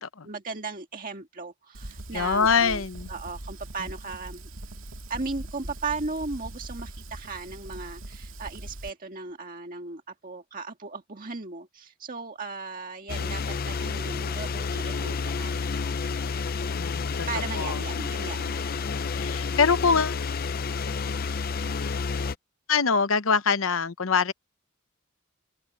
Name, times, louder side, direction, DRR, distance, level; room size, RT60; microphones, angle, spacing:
voice 1, 0.2-2.8 3.1-4.5 5.1-15.6 17.3-18.7, right 3 dB, 40° right, 1.8 m, -36 dB
Fire, 1.7-8.9, right 1 dB, 70° right, 2.4 m, -41 dB
voice 2, 2.1-3.1 16.8-17.3 17.5-17.8 19.1-20.2 22.7-24.3, left 5 dB, 70° left, 0.8 m, -24 dB
sound 1, 13.1-22.3, left 5 dB, 45° left, 0.5 m, -30 dB
head